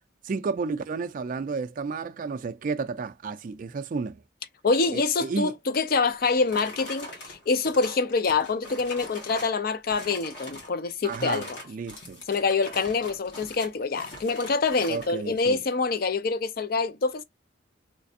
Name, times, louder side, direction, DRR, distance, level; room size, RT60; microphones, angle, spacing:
voice 1, 0.2-4.2 4.9-5.5 11.0-12.2 14.9-15.6, right 4 dB, 45° right, 0.3 m, -32 dB
voice 2, 4.6-11.6 12.3-17.2, left 4 dB, 50° left, 0.5 m, -26 dB
sound 1, 6.1-9.6 9.9-10.7 11.0-15.1, left 1 dB, 70° left, 1.7 m, -43 dB
3.3 x 3.2 x 2.7 m
head